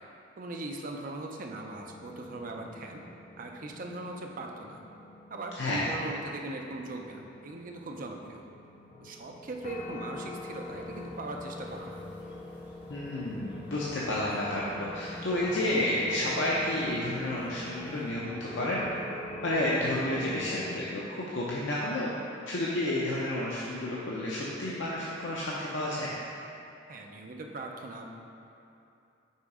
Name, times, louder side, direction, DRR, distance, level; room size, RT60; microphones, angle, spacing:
voice 1, 0.4-3.0 3.4-4.8 5.3-8.5 9.0-12.0 26.9-28.1, right 2 dB, 45° right, 2 dB, 0.5 m, -40 dB
sound 1, 1.5-20.8, left 2 dB, 40° left, 0.4 m, -44 dB
voice 2, 5.6-5.9 12.9-18.9 19.4-22.1 22.5-26.1, left 1 dB, 75° left, -6 dB, 0.7 m, -31 dB
sound 2, 10.5-18.1, equal, 10° right, 1.0 m, -51 dB
5.5 x 4.0 x 4.8 m, 2.7 s
head